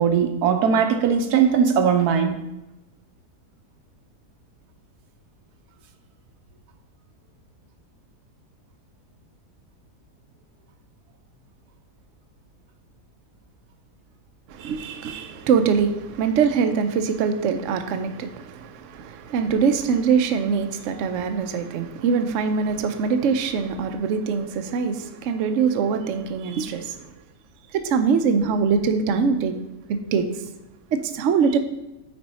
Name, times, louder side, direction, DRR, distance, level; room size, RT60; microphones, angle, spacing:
voice 1, 0.0-2.4, right 7 dB, 85° right, 6 dB, 1.3 m, -19 dB
voice 2, 14.6-27.0 27.7-29.5 29.9-30.2 30.9-31.6, right 6 dB, 65° right, 7 dB, 0.8 m, -23 dB
9.4 x 4.4 x 4.1 m, 0.96 s
omnidirectional pair, 1.6 m